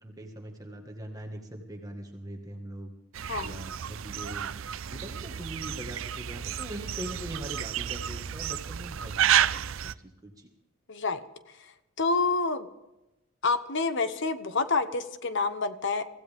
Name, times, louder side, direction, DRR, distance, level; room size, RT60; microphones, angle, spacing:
voice 1, 0.0-2.9 3.4-4.5 4.8-10.5, equal, 15° right, 2 dB, 1.7 m, -42 dB
sound 1, 3.1-9.9, right 10 dB, 65° right, 0.5 m, -31 dB
voice 2, 3.3-3.6 10.9-11.2 12.0-12.7 13.4-16.0, left 3 dB, 55° left, 11 dB, 1.0 m, -28 dB
25.0 x 16.0 x 3.6 m, 0.96 s
head